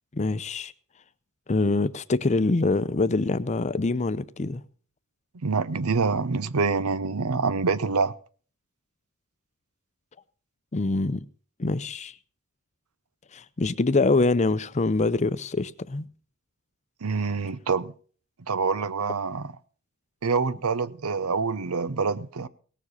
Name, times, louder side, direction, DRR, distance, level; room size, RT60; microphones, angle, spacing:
voice 1, 0.1-0.7 1.5-4.6 10.7-11.2 11.6-12.1 13.3-16.1, left 3 dB, 30° left, 0.6 m, -24 dB
voice 2, 5.4-8.1 17.0-17.9 18.5-19.5 20.2-22.5, right 4 dB, 85° right, 0.7 m, -26 dB
18.0 x 7.3 x 6.3 m
head